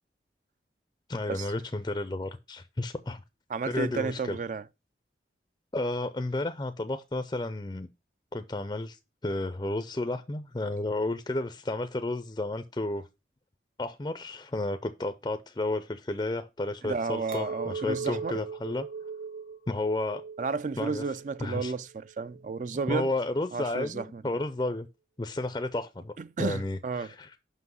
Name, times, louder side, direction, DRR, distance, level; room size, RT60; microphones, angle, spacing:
voice 1, 1.1-3.2 3.7-4.4 5.7-7.9 8.3-13.1 13.8-18.9 19.7-20.2 20.8-21.0 21.4-21.7 22.9-24.9 25.2-26.1 26.4-27.4, left 2 dB, 25° left, 0.4 m, -32 dB
voice 2, 3.5-4.6 16.8-18.4 20.4-23.1 23.5-24.2 26.2-27.1, right 4 dB, 45° right, 0.4 m, -32 dB
Chink clink, 17.3-22.7, right 5 dB, 60° right, 1.5 m, -40 dB
6.0 x 5.5 x 5.4 m
head